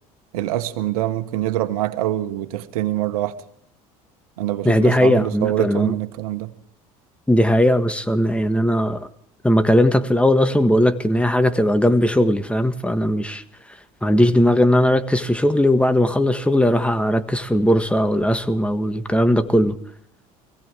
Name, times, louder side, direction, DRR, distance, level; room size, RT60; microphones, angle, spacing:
voice 1, 0.3-3.4 4.4-6.5, right 14 dB, 85° right, 1.3 m, -24 dB
voice 2, 4.6-5.9 7.3-9.1 9.4-13.4 14.0-19.8, left 1 dB, 5° left, 1.5 m, -18 dB
22.0 x 16.5 x 3.5 m
hypercardioid pair, 80°, 18 cm